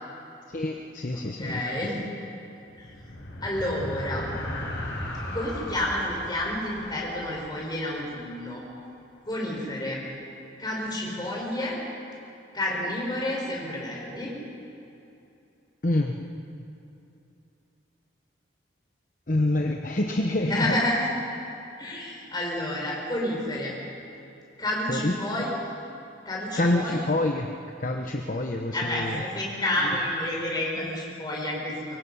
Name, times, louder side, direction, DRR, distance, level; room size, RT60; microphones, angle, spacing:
voice 1, 0.5-1.9 15.8-16.2 19.3-20.8 24.9-25.5 26.6-27.5 27.8-29.2, left 1 dB, 45° left, 2 dB, 1.0 m, -27 dB
voice 2, 1.1-2.0 2.8-2.9 3.4-4.3 5.2-8.6 9.3-10.0 10.6-11.8 12.5-14.3 20.5-21.1 21.8-23.8 24.6-25.5 26.3-27.1 28.7-32.0, left 1 dB, 20° left, -3 dB, 5.3 m, -30 dB
sound 1, 2.7-8.4, left 1 dB, 65° left, 5.1 m, -37 dB
25.0 x 22.5 x 5.6 m, 2.8 s
head